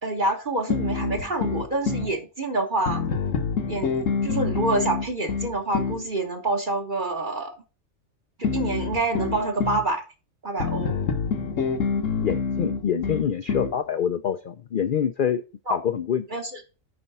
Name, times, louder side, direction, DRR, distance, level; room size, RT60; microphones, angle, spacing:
voice 1, 0.0-3.0 3.7-3.9 4.2-7.6 8.4-10.0 10.4-11.0 15.7-15.8 16.3-16.6, right 2 dB, 40° right, 2 dB, 1.2 m, -27 dB
sound 1, 0.7-2.1 2.9-6.0 8.4-9.9 10.6-13.8, left 5 dB, 70° left, 1.5 m, -27 dB
voice 2, 12.2-15.4 15.7-16.3, left 8 dB, 55° left, 8 dB, 0.6 m, -26 dB
10.5 x 4.4 x 5.4 m, 0.32 s
omnidirectional pair, 1.4 m